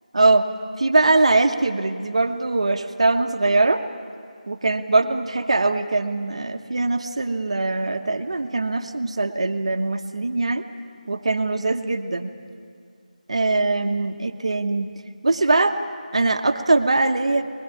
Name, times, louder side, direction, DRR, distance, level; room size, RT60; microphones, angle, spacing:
voice 1, 0.1-0.5 0.8-3.8 4.5-10.6 11.1-12.3 13.3-14.9 15.2-15.8 16.1-17.4, right 2 dB, 45° right, 6 dB, 1.2 m, -21 dB
24.5 x 21.5 x 7.2 m, 2.2 s
figure-of-eight pair, 165°, 4 cm